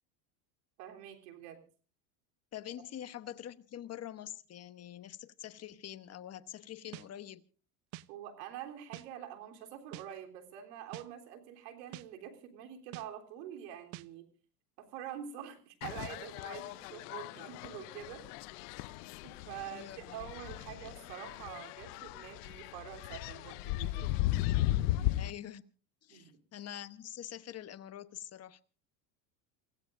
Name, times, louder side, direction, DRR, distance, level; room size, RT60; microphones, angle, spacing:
voice 1, 0.8-1.6 8.1-14.3 14.8-18.2 19.2-24.2 24.8-25.3 26.1-26.4, right 10 dB, 80° right, 3.7 m, -46 dB
voice 2, 2.5-7.4 19.7-20.3 25.1-25.6 26.0-28.6, left 11 dB, 30° left, 1.1 m, -45 dB
sound 1, 6.9-7.1 7.9-8.1 8.9-9.1 9.9-10.1 10.9-11.1 11.9-12.1 12.9-13.1 13.9-14.1, right 17 dB, 60° right, 0.8 m, -45 dB
sound 2, 15.8-25.3, left 16 dB, 70° left, 0.8 m, -36 dB
28.5 x 16.0 x 2.6 m
supercardioid pair, 120°, 48 cm